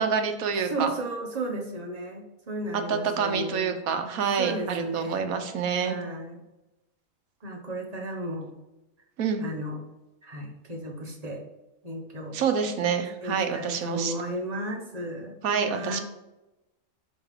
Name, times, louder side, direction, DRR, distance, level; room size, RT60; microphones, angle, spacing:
voice 1, 0.0-0.9 2.9-6.0 9.2-9.4 12.3-14.1 15.4-16.0, right 6 dB, 85° right, 6 dB, 1.3 m, -27 dB
voice 2, 0.6-3.7 4.4-5.3 5.7-6.4 7.4-8.5 9.4-9.8 10.2-11.4 11.8-12.4 13.2-15.4 15.7-16.0, right 1 dB, 30° right, 0 dB, 1.1 m, -34 dB
6.3 x 3.6 x 4.8 m, 0.99 s
omnidirectional pair, 1.4 m